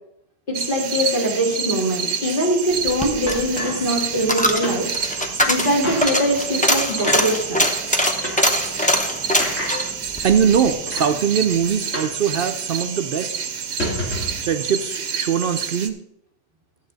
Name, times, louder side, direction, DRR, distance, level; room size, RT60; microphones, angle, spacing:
voice 1, 0.5-4.9 5.5-7.7, equal, 50° left, -2 dB, 2.5 m, -22 dB
sound 1, 0.5-15.9, right 7 dB, 85° right, 1.1 m, -29 dB
Coin (dropping), 2.8-11.2 11.6-11.7, left 1 dB, 10° left, 0.7 m, -23 dB
sound 2, 3.3-4.3 4.6-4.8 5.2-5.3 5.8-6.1 7.0-7.2 8.2-8.4 9.4-9.7 10.5-10.6 10.9-11.1 11.9-12.2 12.4-12.5 12.9-13.1 13.6-14.4, left 1 dB, 75° left, 3.2 m, -28 dB
voice 2, 10.2-13.3 14.4-16.0, right 7 dB, 60° right, 8 dB, 0.7 m, -21 dB
12.0 x 7.4 x 4.0 m, 0.79 s
omnidirectional pair, 1.1 m